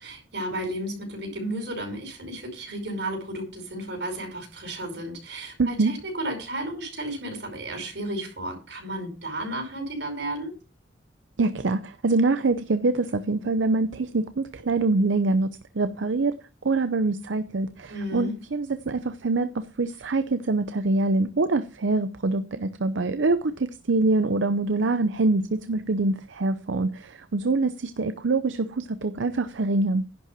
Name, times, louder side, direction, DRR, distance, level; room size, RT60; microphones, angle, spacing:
voice 1, 0.0-10.5 17.9-18.3, right 1 dB, 65° right, 4 dB, 5.2 m, -33 dB
voice 2, 5.6-5.9 11.4-15.5 15.7-16.3 16.6-30.0, right 3 dB, 80° right, 11 dB, 0.6 m, -25 dB
11.0 x 5.6 x 7.3 m, 0.33 s
head